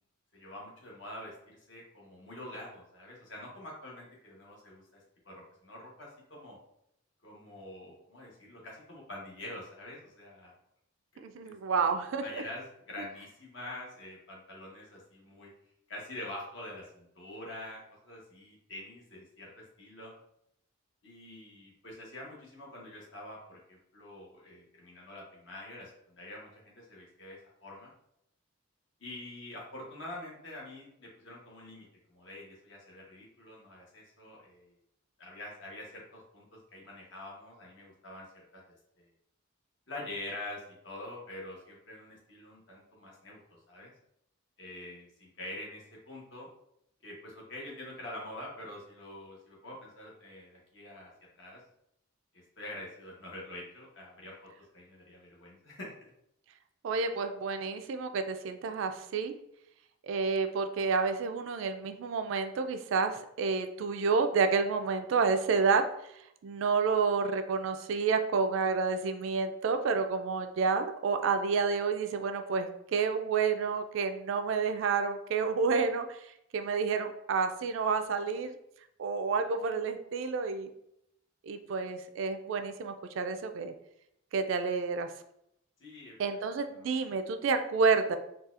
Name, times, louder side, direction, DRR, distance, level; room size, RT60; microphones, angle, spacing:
voice 1, 0.3-4.8 5.2-6.6 7.2-10.5 11.4-11.8 12.2-15.5 15.9-20.1 21.0-27.9 29.0-34.8 35.2-38.3 38.5-38.6 39.0-39.1 39.9-43.4 43.7-43.9 44.6-46.5 47.0-51.1 51.4-51.6 52.6-56.1 85.8-86.1 86.8-86.9, left 1 dB, 65° left, -3 dB, 1.0 m, -46 dB
voice 2, 11.2-12.4 56.8-59.3 60.0-65.9 66.4-76.2 76.5-78.6 79.0-80.7 81.4-83.7 84.3-85.1 86.2-88.2, right 5 dB, 70° right, 8 dB, 0.3 m, -29 dB
4.0 x 2.3 x 2.4 m, 0.77 s
head